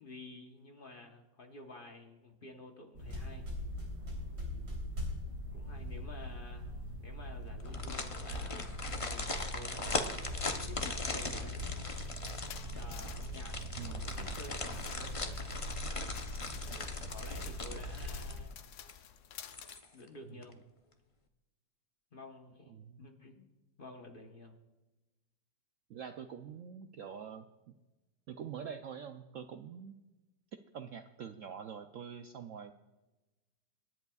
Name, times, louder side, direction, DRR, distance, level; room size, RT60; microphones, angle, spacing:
voice 1, 0.0-3.6 5.5-10.3 10.7-12.3 12.7-13.6 13.8-15.6 16.7-18.5 19.9-20.7 22.1-23.5 23.8-24.6, left 2 dB, 35° left, 3 dB, 1.1 m, -52 dB
sound 1, 3.0-18.4, equal, 55° right, 4.0 m, -41 dB
voice 2, 4.5-4.9 13.7-14.2 20.3-20.4 22.7-23.0 25.9-27.8 28.3-30.0 30.7-32.7, right 7 dB, 90° right, 7 dB, 0.6 m, -45 dB
sound 2, 7.6-18.5 18.9-19.0 19.4-20.1 20.4-20.5, left 3 dB, 55° left, 0.3 m, -40 dB
sound 3, 11.9-19.8, left 10 dB, 75° left, 1.4 m, -53 dB
26.5 x 10.5 x 2.4 m, 1.1 s
omnidirectional pair, 2.0 m